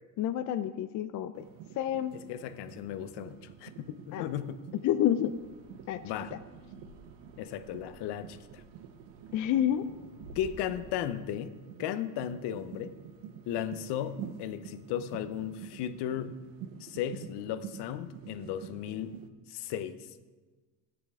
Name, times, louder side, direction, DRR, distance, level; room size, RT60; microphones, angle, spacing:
voice 1, 0.2-1.4 1.8-2.1 4.1-4.3 4.7-5.3 5.9-6.0 6.3-6.4 9.3-9.9, left 11 dB, 45° left, 11 dB, 0.4 m, -29 dB
sound 1, 1.3-19.3, right 9 dB, 90° right, 0.9 m, -48 dB
voice 2, 2.3-4.6 6.0-6.3 7.4-8.4 10.4-11.5 11.8-13.0 13.5-16.4 16.8-19.1 19.5-20.0, left 10 dB, 65° left, 12 dB, 0.8 m, -35 dB
sound 2, 5.2-11.0, right 1 dB, 70° right, 1.9 m, -54 dB
14.0 x 9.0 x 3.6 m, 1.3 s
cardioid pair, 140°, 43 cm